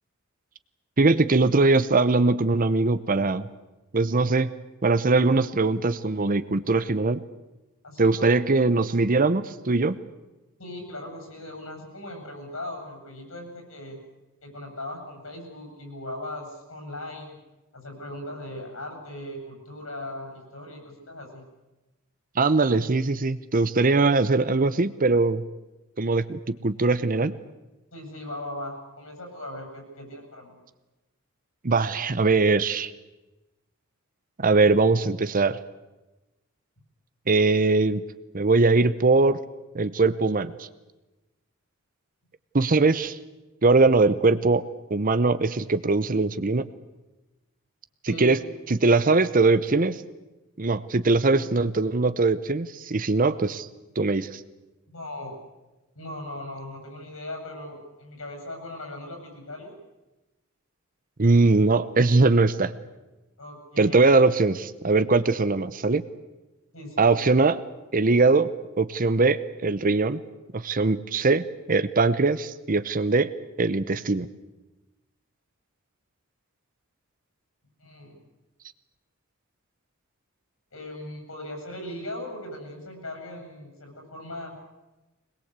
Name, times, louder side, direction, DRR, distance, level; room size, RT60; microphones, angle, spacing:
voice 1, 1.0-3.5 3.9-4.5 4.8-7.2 8.0-10.0 22.4-25.4 26.0-27.3 31.6-32.9 34.4-35.6 37.3-38.0 38.3-39.4 39.7-40.7 42.5-43.2 43.6-44.6 44.9-46.7 48.2-48.4 48.7-50.0 50.6-53.7 54.0-54.4 61.2-62.7 63.8-66.0 67.0-67.6 67.9-68.5 68.8-70.2 70.5-73.3 73.6-74.3, right 3 dB, 40° right, 13 dB, 0.8 m, -21 dB
voice 2, 7.8-8.3 10.6-14.0 14.4-17.4 17.7-21.4 27.9-30.5 48.1-48.4 54.9-55.4 55.9-59.7 63.4-64.1 66.7-67.5 77.8-78.2 80.7-84.6, left 1 dB, 75° left, 4 dB, 8.0 m, -38 dB
23.0 x 21.0 x 8.2 m, 1.1 s
head